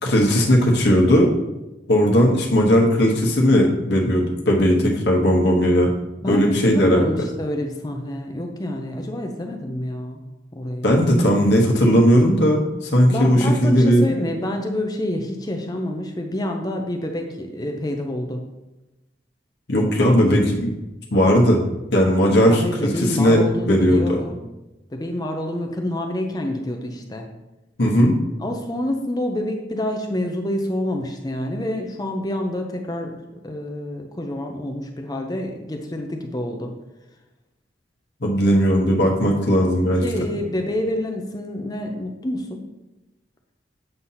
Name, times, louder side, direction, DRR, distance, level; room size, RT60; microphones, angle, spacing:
voice 1, 0.0-1.3 1.9-5.9 6.3-7.1 10.8-14.1 19.7-20.7 21.1-21.6 21.9-24.2 27.8-28.2 38.2-40.0, equal, 70° left, -1 dB, 1.0 m, -17 dB
voice 2, 6.2-10.2 10.5-10.9 13.0-18.4 22.5-24.4 24.9-27.3 28.4-33.2 33.4-36.7 39.2-39.5 40.0-42.6, left 1 dB, 20° left, 3 dB, 0.5 m, -27 dB
7.8 x 2.8 x 5.6 m, 1.0 s
head